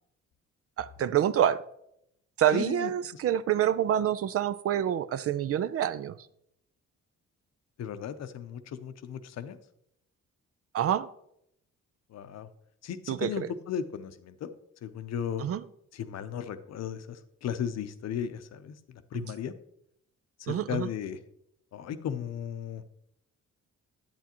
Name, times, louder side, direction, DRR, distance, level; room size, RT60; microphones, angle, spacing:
voice 1, 0.8-1.6 2.4-6.2 10.7-11.1 13.1-13.5 15.4-15.6 19.2-19.3 20.5-20.9, right 10 dB, 50° right, 15 dB, 0.4 m, -27 dB
voice 2, 2.5-2.9 7.8-9.6 12.1-12.5 12.8-14.5 14.8-15.4 15.9-19.5 20.4-21.2 21.7-22.8, left 8 dB, 60° left, 11 dB, 0.7 m, -36 dB
8.6 x 8.2 x 2.9 m, 0.75 s
cardioid pair, 90°, 30 cm